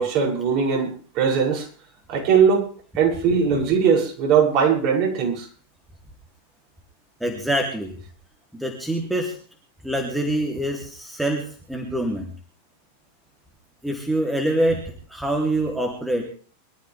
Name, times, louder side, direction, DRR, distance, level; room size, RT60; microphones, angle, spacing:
voice 1, 0.0-1.7 2.1-2.7 3.0-5.5, right 6 dB, 40° right, -2 dB, 7.1 m, -20 dB
voice 2, 7.2-8.0 8.5-9.3 9.8-12.3 13.8-16.2, right 1 dB, 5° right, 1 dB, 3.2 m, -25 dB
24.0 x 13.5 x 3.5 m, 0.42 s
figure-of-eight pair, 90°, 0 cm